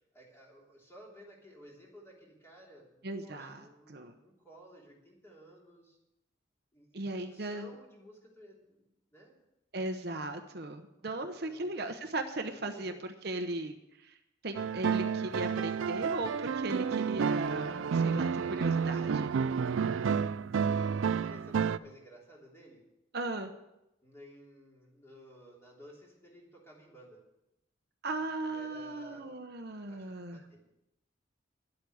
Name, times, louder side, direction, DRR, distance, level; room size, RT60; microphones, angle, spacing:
voice 1, 0.0-3.9 4.2-6.0 6.7-9.4 11.4-11.8 12.6-13.0 21.2-22.8 24.0-27.2 28.4-29.4 29.8-30.6, right 1 dB, 15° left, -3 dB, 3.2 m, -55 dB
voice 2, 3.0-4.1 6.9-7.7 9.7-14.1 14.4-19.3 23.1-23.5 28.0-30.4, right 2 dB, 55° right, 6 dB, 0.9 m, -37 dB
sound 1, 14.5-21.8, right 6 dB, 90° right, 0.4 m, -30 dB
11.0 x 8.3 x 7.8 m, 0.87 s
head